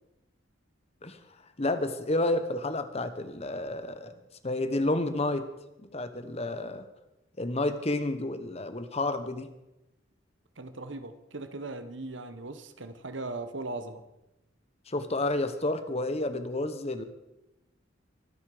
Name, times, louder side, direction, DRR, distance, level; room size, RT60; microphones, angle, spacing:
voice 1, 1.6-4.1 4.4-5.5 5.9-6.9 7.4-9.5 14.9-17.0, left 2 dB, 30° left, 10 dB, 1.0 m, -30 dB
voice 2, 10.6-14.0, right 2 dB, 75° right, 10 dB, 1.4 m, -38 dB
23.5 x 9.7 x 4.9 m, 0.94 s
head